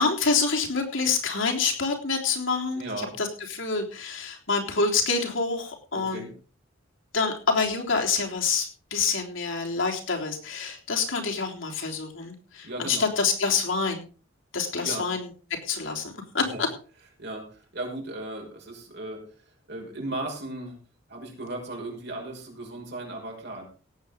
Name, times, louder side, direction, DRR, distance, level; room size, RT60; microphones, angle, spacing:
voice 1, 0.0-2.9 3.2-6.3 7.1-14.0 14.5-15.3 15.6-16.7, left 4 dB, 75° left, 1 dB, 3.7 m, -27 dB
voice 2, 2.7-3.1 5.9-6.3 12.6-13.1 14.8-15.1 16.4-16.7 17.2-20.8 21.1-23.7, right 2 dB, 60° right, 1 dB, 5.7 m, -36 dB
17.5 x 8.3 x 5.2 m, 0.37 s
head